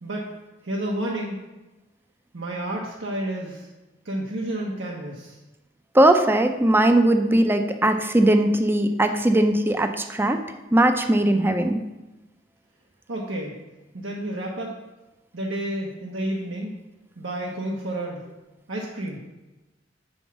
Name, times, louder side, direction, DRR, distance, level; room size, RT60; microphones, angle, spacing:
voice 1, 0.0-0.3 0.6-1.4 2.3-3.7 4.0-5.4 13.1-13.5 13.9-14.7 15.3-16.8 17.2-18.2 18.7-19.2, right 1 dB, 90° right, -2 dB, 1.1 m, -30 dB
voice 2, 5.9-10.4 10.7-11.8, right 1 dB, 10° right, 6 dB, 0.5 m, -19 dB
7.0 x 5.4 x 5.9 m, 1.1 s
head